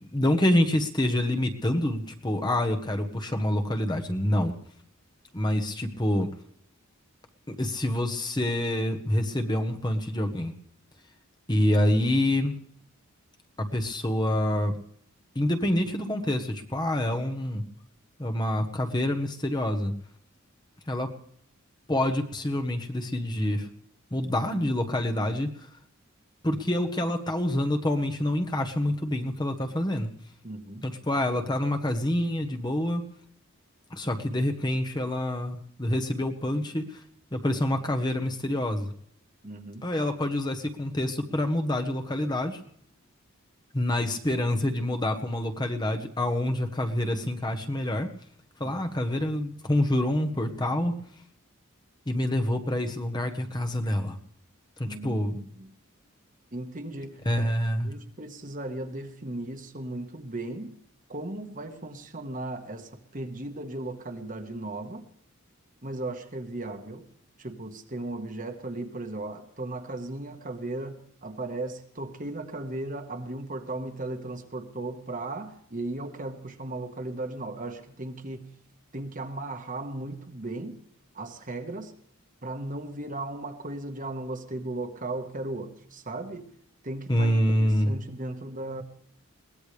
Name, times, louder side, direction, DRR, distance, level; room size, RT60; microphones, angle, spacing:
voice 1, 0.0-4.5 5.3-6.3 7.5-10.5 11.5-12.5 13.6-14.7 15.3-17.6 18.2-19.9 20.9-21.1 21.9-23.7 24.1-25.5 26.4-30.1 30.8-33.0 33.9-37.0 37.3-38.9 39.8-42.6 43.7-48.1 48.6-51.0 52.1-54.2 54.8-55.4 57.2-57.9 87.1-87.9, left 1 dB, 20° left, 4 dB, 1.2 m, -27 dB
voice 2, 30.4-30.9 39.4-39.9 48.6-48.8 54.9-55.7 56.5-57.5 57.8-60.7 61.1-65.1 65.8-67.0 67.4-78.5 78.9-80.8 81.1-81.9 82.4-86.5 86.8-88.8, right 2 dB, 40° right, 6 dB, 1.5 m, -36 dB
22.0 x 18.0 x 3.4 m, 0.65 s
head